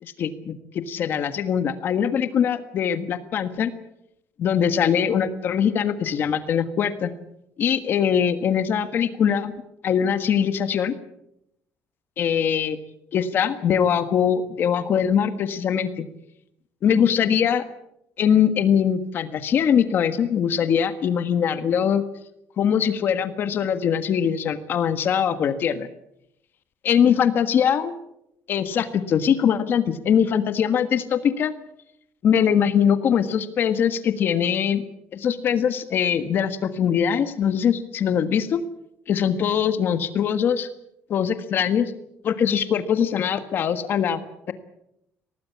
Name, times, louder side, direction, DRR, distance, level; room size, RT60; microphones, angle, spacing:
voice 1, 0.0-3.7 4.4-7.1 7.6-9.5 9.8-10.9 12.2-12.8 13.1-16.0 16.8-17.6 18.2-22.0 22.6-25.9 26.8-27.9 28.5-31.5 32.2-34.8 35.1-38.6 39.1-40.7 41.1-41.9 42.2-44.2, left 8 dB, 45° left, 10 dB, 1.6 m, -22 dB
23.5 x 18.5 x 8.6 m, 0.80 s
cardioid pair, 160°, 5 cm